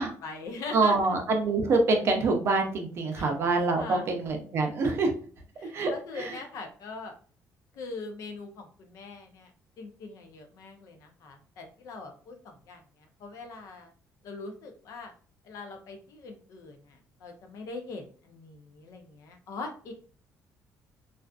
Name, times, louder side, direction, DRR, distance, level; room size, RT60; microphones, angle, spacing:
voice 1, 0.0-1.0 3.1-3.3 3.8-4.1 5.6-7.1 7.7-9.5 9.8-12.8 13.2-13.9 14.2-15.1 15.4-19.9, left 3 dB, 65° left, 5 dB, 0.5 m, -41 dB
voice 2, 0.7-5.1 5.7-6.4, right 3 dB, 45° right, 3 dB, 0.5 m, -26 dB
2.4 x 2.4 x 2.3 m, 0.42 s
cardioid pair, 160°, 6 cm